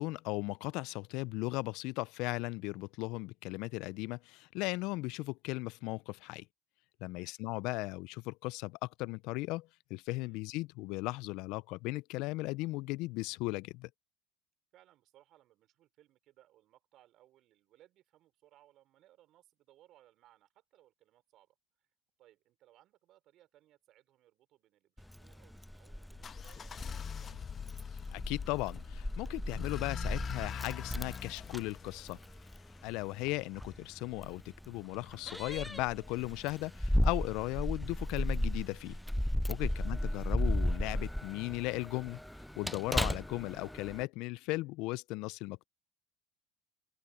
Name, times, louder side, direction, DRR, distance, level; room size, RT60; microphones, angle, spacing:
voice 1, 0.0-6.5 7.0-13.9 28.1-32.2 32.8-39.0 39.5-42.2 42.6-45.7, left 22 dB, 65° left, 0.6 m, -37 dB
voice 2, 14.7-21.9 22.2-27.5 39.6-39.9, right 14 dB, 55° right, 5.1 m, -65 dB
Keys jangling, 25.0-44.0, equal, 5° left, 0.4 m, -36 dB
sound 1, 26.2-33.1, left 7 dB, 35° left, 1.3 m, -43 dB
hypercardioid pair, 75°, 0 cm